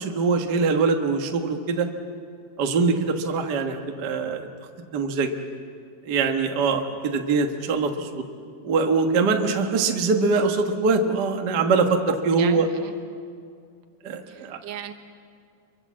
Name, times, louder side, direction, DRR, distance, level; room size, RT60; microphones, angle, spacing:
voice 1, 0.0-1.9 2.6-4.5 4.9-5.3 6.0-8.2 8.6-12.7 14.0-14.6, right 4 dB, 85° right, 4 dB, 0.9 m, -23 dB
voice 2, 12.1-12.9 14.3-14.9, right 9 dB, 65° right, 6 dB, 2.7 m, -37 dB
26.5 x 23.5 x 7.5 m, 2.2 s
omnidirectional pair, 4.5 m